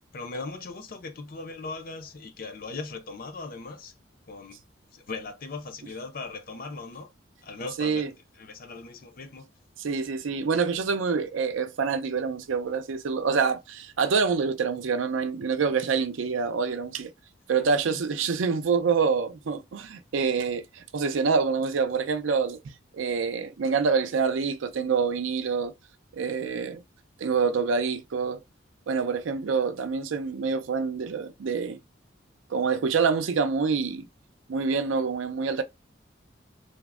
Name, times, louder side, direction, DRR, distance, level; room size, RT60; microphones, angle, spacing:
voice 1, 0.1-3.9 4.3-4.6 4.9-7.1 7.4-9.5 13.3-13.4 17.9-18.0, left 3 dB, 45° left, 0.5 m, -39 dB
voice 2, 7.8-8.1 9.8-17.1 17.5-22.6 22.9-25.7 26.1-26.8 27.2-28.4 28.9-31.8 32.5-34.1 34.5-35.6, right 5 dB, 75° right, 0.4 m, -26 dB
3.4 x 2.1 x 2.3 m
head